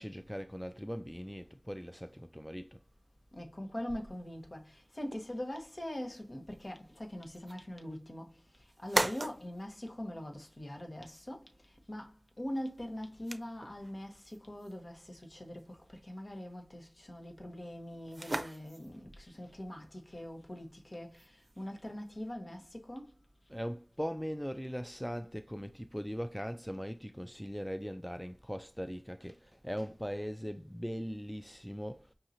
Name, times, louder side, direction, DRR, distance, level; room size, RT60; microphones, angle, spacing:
voice 1, 0.0-2.8 23.5-32.1, equal, 5° left, 0.3 m, -40 dB
voice 2, 3.3-23.1, left 1 dB, 55° left, 1.2 m, -43 dB
sound 1, 3.9-22.3, right 2 dB, 60° right, 0.5 m, -43 dB
5.5 x 2.9 x 2.5 m
wide cardioid pair, 45°, 0 cm